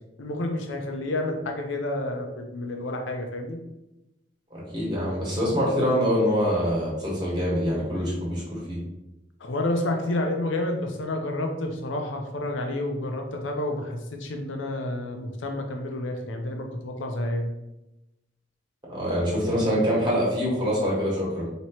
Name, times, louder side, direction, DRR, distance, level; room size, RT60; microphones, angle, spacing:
voice 1, 0.2-3.6 9.4-17.5, left 1 dB, 90° left, 3 dB, 0.7 m, -29 dB
voice 2, 4.5-8.8 18.9-21.5, equal, 25° right, -6 dB, 1.5 m, -25 dB
4.3 x 3.0 x 3.0 m, 0.94 s
head